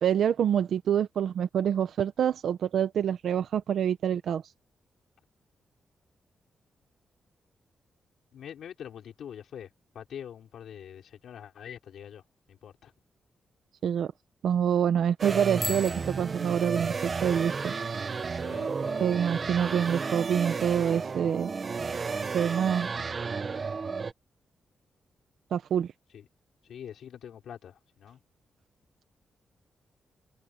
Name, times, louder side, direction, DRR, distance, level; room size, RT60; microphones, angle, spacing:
voice 1, 0.0-4.4 13.8-14.1 14.4-17.7 19.0-21.5 22.3-22.9 25.5-25.9, right 8 dB, 75° right, 0.9 m, -26 dB
voice 2, 8.3-9.7 9.9-12.2 12.5-12.9 18.3-19.5 26.1-26.2 26.7-28.2, left 9 dB, 85° left, 4.9 m, -44 dB
sound 1, 15.2-24.1, right 5 dB, 40° right, 1.2 m, -32 dB
Bicycle bell, 15.5-17.3, left 1 dB, 5° left, 2.6 m, -39 dB
wide cardioid pair, 125°, 0 cm